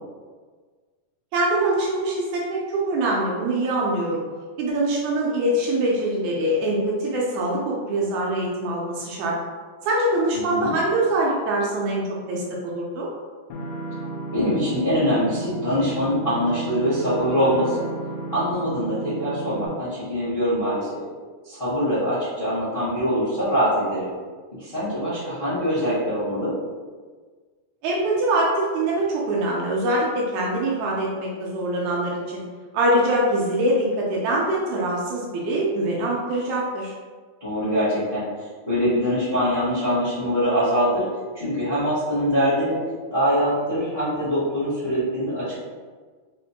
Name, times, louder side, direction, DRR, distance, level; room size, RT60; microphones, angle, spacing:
voice 1, 1.3-4.2 4.6-9.4 9.8-13.1 27.8-32.4 32.7-36.9, right 1 dB, 80° right, -3 dB, 1.8 m, -23 dB
voice 2, 10.3-10.7 14.3-17.8 18.3-21.0 21.4-24.1 24.6-26.5 37.4-41.0 41.3-42.8 43.1-45.6, equal, 50° left, -13 dB, 0.6 m, -23 dB
sound 1, 13.5-19.7, right 3 dB, 90° left, 2.1 m, -33 dB
5.0 x 2.1 x 2.7 m, 1.5 s
omnidirectional pair, 3.5 m